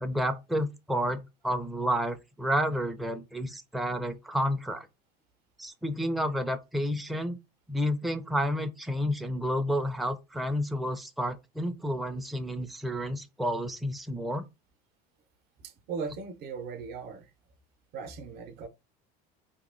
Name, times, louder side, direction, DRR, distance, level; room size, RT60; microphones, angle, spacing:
voice 1, 0.0-4.9 5.6-7.4 7.7-14.5, equal, ahead, 0.4 m, -30 dB
voice 2, 15.6-17.3 17.9-18.7, right 5 dB, 55° right, 0.7 m, -38 dB
2.9 x 2.4 x 3.7 m
supercardioid pair, 105°, 20 cm